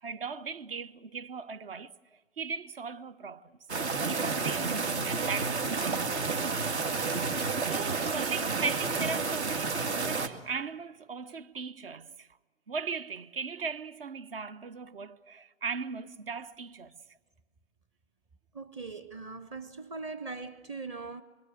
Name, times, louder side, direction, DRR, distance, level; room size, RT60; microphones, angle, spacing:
voice 1, 0.0-1.9 2.4-3.5 4.1-4.7 5.0-6.1 7.6-12.3 12.7-16.9, right 5 dB, 50° right, 0.9 m, -38 dB
sound 1, 3.7-10.3, right 4 dB, 65° right, 2.2 m, -30 dB
voice 2, 18.5-21.2, right 4 dB, 20° right, 0.8 m, -40 dB
25.0 x 24.5 x 7.7 m
figure-of-eight pair, 125°, 35 cm